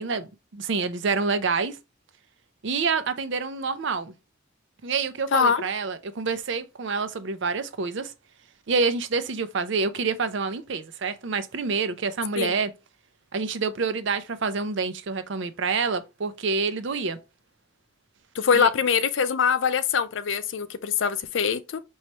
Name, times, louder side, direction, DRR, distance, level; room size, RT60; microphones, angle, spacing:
voice 1, 0.0-1.8 2.6-4.1 4.8-8.1 8.7-12.7 13.3-17.2 18.5-18.7, right 4 dB, 60° right, 0.6 m, -27 dB
voice 2, 5.3-5.6 12.4-12.5 18.3-21.8, left 6 dB, 65° left, 0.5 m, -23 dB
5.5 x 3.1 x 3.0 m
head